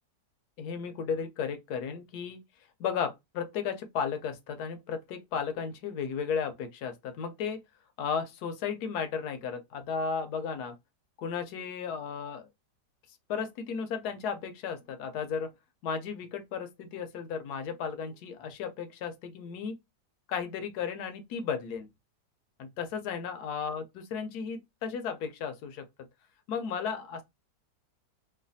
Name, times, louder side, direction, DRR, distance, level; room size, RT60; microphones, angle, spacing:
voice 1, 0.6-2.4 2.8-7.6 8.0-10.7 11.2-12.5 13.3-15.5 15.8-19.7 20.3-21.9 22.6-25.8 26.5-27.2, left 6 dB, 70° left, 1.0 m, -34 dB
3.1 x 2.2 x 2.6 m
omnidirectional pair, 1.9 m